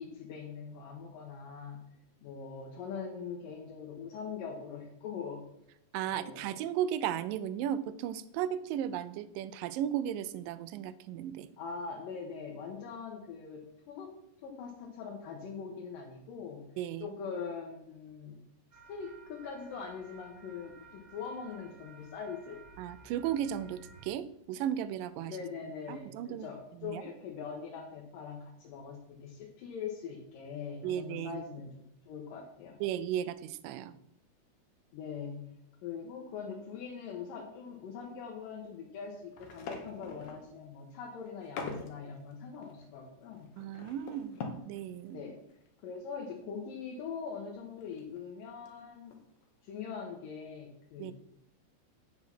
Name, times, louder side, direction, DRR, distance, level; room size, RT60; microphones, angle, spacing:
voice 1, 0.0-1.8 2.2-5.4 6.1-6.5 11.6-14.2 14.4-16.6 17.0-18.4 18.9-22.6 25.3-32.8 34.9-35.4 35.8-43.5 45.1-45.4 45.8-49.2 49.6-51.1, left 6 dB, 90° left, -1 dB, 2.8 m, -42 dB
voice 2, 5.9-11.5 16.8-17.1 22.8-25.4 25.9-26.5 26.8-27.0 30.8-31.4 32.8-34.0 43.6-44.4 44.7-45.2 51.0-51.1, right 10 dB, 90° right, 15 dB, 2.3 m, -35 dB
sound 1, 18.7-24.1, right 3 dB, 70° right, 0.7 m, -55 dB
sound 2, 39.3-40.5 41.2-42.0 42.3-42.4 42.6-44.8 45.1-45.2 45.5-45.7 45.9-46.0 47.6-48.2 48.7-48.8 49.1-49.4, left 4 dB, 60° left, 2.1 m, -43 dB
8.7 x 6.1 x 5.9 m, 0.77 s
omnidirectional pair, 3.8 m